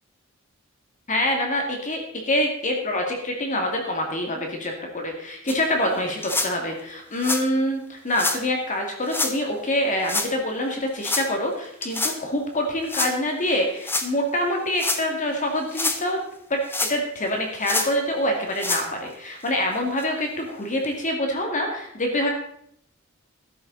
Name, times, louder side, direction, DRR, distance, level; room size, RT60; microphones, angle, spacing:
voice 1, 1.1-16.2 16.5-22.3, left 1 dB, 35° left, 2 dB, 2.2 m, -26 dB
sound 1, 5.5-5.6 6.2-6.5 7.2-7.4 8.1-8.4 9.1-9.3 10.0-10.3 11.0-11.3 11.8-12.2 12.9-13.1 13.8-14.1 14.7-15.0 15.6-16.0 16.7-17.2 17.6-17.9 18.5-18.9 19.5-19.6 20.0-20.1 20.8-20.9, left 2 dB, 10° left, 1.1 m, -26 dB
13.5 x 11.5 x 4.0 m, 0.70 s
head